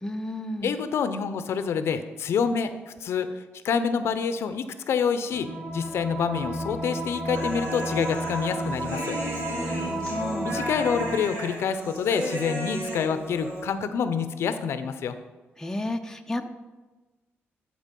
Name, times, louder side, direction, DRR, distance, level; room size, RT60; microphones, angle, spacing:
voice 1, 0.0-0.7 9.6-10.6 15.6-16.5, left 1 dB, 10° left, 6 dB, 0.6 m, -32 dB
voice 2, 0.6-3.3 3.6-9.2 10.4-15.1, left 6 dB, 70° left, 11 dB, 0.6 m, -27 dB
sound 1, 5.3-11.2, right 1 dB, 15° right, 2.0 m, -32 dB
Human voice, 7.3-13.7, right 1 dB, 90° right, 3.3 m, -35 dB
11.5 x 4.6 x 5.3 m, 1.2 s
cardioid pair, 110°, 5 cm